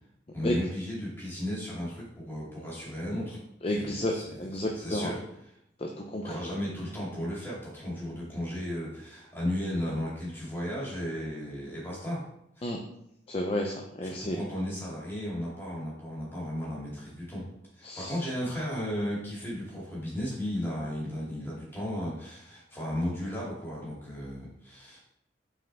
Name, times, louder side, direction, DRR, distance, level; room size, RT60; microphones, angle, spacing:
voice 1, 0.3-3.4 3.7-5.6 6.2-12.2 12.6-12.7 14.0-17.4 17.7-25.0, equal, 15° left, -7 dB, 2.4 m, -35 dB
voice 2, 3.6-4.1 4.4-5.1 5.8-6.3 12.6-12.8 13.3-14.4 17.8-18.1, left 1 dB, 35° left, 1 dB, 0.5 m, -31 dB
6.1 x 4.6 x 3.4 m, 0.78 s
head